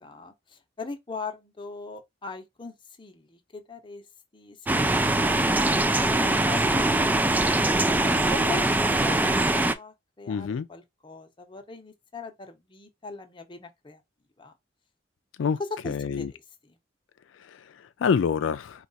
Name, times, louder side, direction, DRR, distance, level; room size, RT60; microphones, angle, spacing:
voice 1, 0.0-4.1 4.3-7.0 8.0-14.0 14.4-14.5 15.6-16.4 16.7-16.8, left 4 dB, 25° left, 0.8 m, -40 dB
sound 1, 4.7-9.7, right 2 dB, 10° right, 0.3 m, -22 dB
voice 2, 10.3-10.7 15.4-15.6 15.9-16.3 17.3-18.9, left 6 dB, 80° left, 0.4 m, -27 dB
4.6 x 2.4 x 3.9 m
head